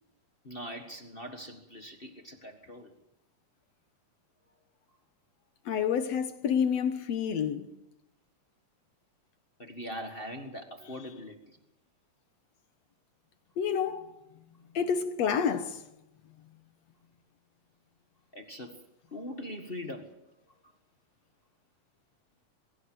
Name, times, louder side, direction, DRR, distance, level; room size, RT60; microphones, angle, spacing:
voice 1, 0.4-2.9 9.6-11.6 18.3-18.8 19.1-20.1, equal, 30° left, 0.9 m, -41 dB
voice 2, 5.7-7.7 13.6-14.1 14.8-15.8, left 7 dB, 60° left, 2.0 m, -28 dB
23.0 x 16.5 x 7.9 m
omnidirectional pair, 3.8 m